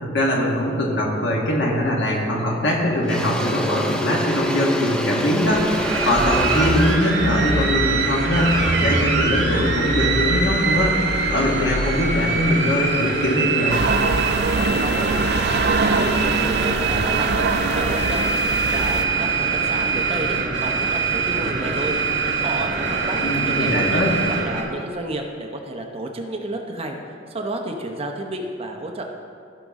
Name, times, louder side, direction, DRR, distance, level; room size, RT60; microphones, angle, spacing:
voice 1, 0.0-5.7 6.0-8.5 8.8-11.0 11.3-13.8 23.2-24.1, left 1 dB, 70° left, -2 dB, 1.8 m, -22 dB
Engine / Drill, 2.1-2.3 2.7-8.8, equal, 5° left, 0.5 m, -27 dB
sound 1, 5.4-24.6, right 3 dB, 75° right, 1.8 m, -23 dB
sound 2, 13.7-19.0, right 4 dB, 60° right, 0.4 m, -23 dB
voice 2, 14.5-15.2 15.5-18.3 18.7-22.0 22.4-24.0 24.4-27.0 27.3-29.0, right 2 dB, 30° right, 2 dB, 0.8 m, -31 dB
15.5 x 5.3 x 3.7 m, 2.4 s
head